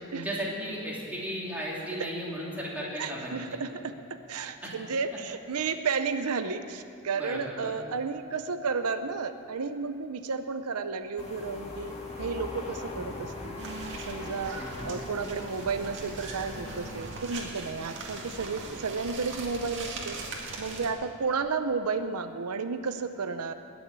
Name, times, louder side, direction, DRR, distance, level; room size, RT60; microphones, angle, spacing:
voice 1, 0.1-3.6 4.6-4.7 7.1-7.8 14.6-15.0, equal, 5° right, -5 dB, 3.1 m, -35 dB
voice 2, 3.0-13.6 14.1-20.2 20.6-23.5, right 4 dB, 85° right, 9 dB, 0.7 m, -32 dB
sound 1, 11.2-17.0, left 2 dB, 30° left, 2.1 m, -40 dB
sound 2, 13.6-20.9, right 3 dB, 55° right, 2.1 m, -40 dB
20.0 x 7.2 x 8.7 m, 2.7 s
head